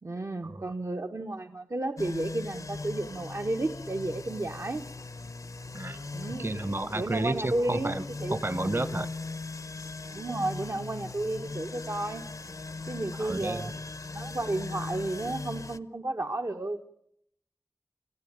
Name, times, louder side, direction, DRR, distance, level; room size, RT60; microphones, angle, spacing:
voice 1, 0.0-4.8 6.1-6.6 6.9-8.4 10.1-12.2 12.9-13.7 14.1-16.8, right 2 dB, 70° right, 3 dB, 1.2 m, -32 dB
sound 1, 2.0-15.8, left 3 dB, 90° left, 0.9 m, -39 dB
voice 2, 6.4-8.0 8.3-9.1 13.2-13.7, right 2 dB, 45° right, 14 dB, 1.2 m, -31 dB
30.0 x 15.5 x 8.8 m, 0.75 s
wide cardioid pair, 50°, 6 cm